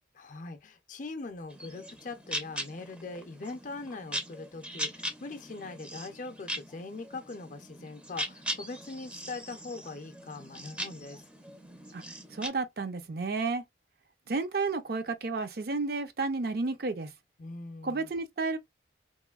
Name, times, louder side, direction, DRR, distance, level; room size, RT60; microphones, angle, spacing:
voice 1, 0.2-11.2 17.4-18.1, left 3 dB, 45° left, 0.5 m, -41 dB
sound 1, 1.5-12.5, equal, 5° right, 0.5 m, -40 dB
voice 2, 12.3-13.6 14.3-17.1 17.8-18.6, right 3 dB, 55° right, 0.5 m, -31 dB
3.0 x 2.6 x 2.3 m
head